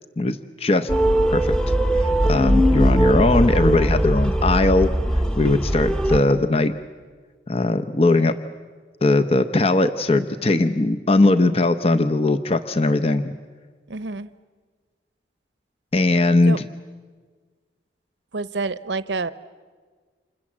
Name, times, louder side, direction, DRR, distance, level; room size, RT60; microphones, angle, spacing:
voice 1, 0.2-0.9 1.3-1.6 2.0-4.9 5.4-6.7 7.5-8.3 9.0-13.3 15.9-16.7, left 2 dB, 35° left, 9 dB, 0.7 m, -19 dB
sound 1, 0.9-6.2, equal, 5° left, 0.9 m, -20 dB
voice 2, 13.9-14.3 16.5-16.6 18.3-19.3, right 3 dB, 80° right, 15 dB, 0.8 m, -28 dB
29.5 x 27.0 x 7.4 m, 1.5 s
head